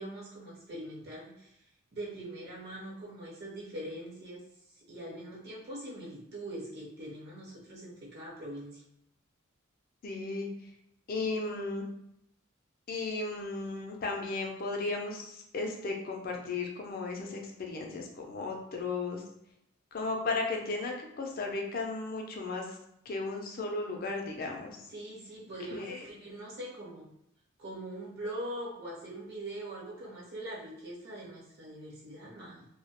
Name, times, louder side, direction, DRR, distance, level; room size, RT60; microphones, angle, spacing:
voice 1, 0.0-1.6 1.9-4.4 4.7-8.8 24.9-27.1 27.6-32.7, right 1 dB, 50° right, -5 dB, 0.9 m, -42 dB
voice 2, 10.0-10.5 11.1-11.8 12.9-19.2 19.9-22.7 23.1-24.8 25.7-26.1, left 3 dB, 45° left, 2 dB, 0.4 m, -35 dB
2.2 x 2.1 x 2.9 m, 0.78 s
head